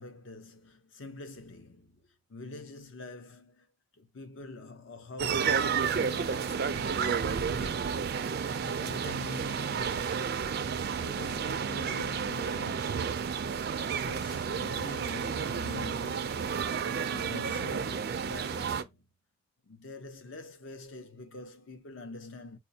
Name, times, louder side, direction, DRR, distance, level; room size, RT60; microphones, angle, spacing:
voice 1, 0.0-8.1 8.6-10.2 11.0-13.2 13.9-16.5 17.1-19.1 19.6-22.6, left 2 dB, 60° left, 0.7 m, -45 dB
sound 1, 5.2-18.8, right 6 dB, 50° right, 0.3 m, -31 dB
4.3 x 2.1 x 2.7 m
head